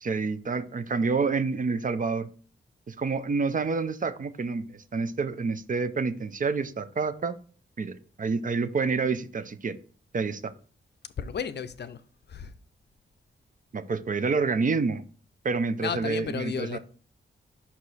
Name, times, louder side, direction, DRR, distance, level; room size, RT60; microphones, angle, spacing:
voice 1, 0.0-2.3 2.9-7.4 7.8-9.8 10.1-10.5 13.7-15.0 15.4-16.8, right 4 dB, 40° right, 0.5 m, -28 dB
voice 2, 11.2-12.0 12.3-12.5 15.8-16.8, left 7 dB, 55° left, 0.5 m, -33 dB
5.6 x 4.7 x 4.0 m
wide cardioid pair, 100°, 20 cm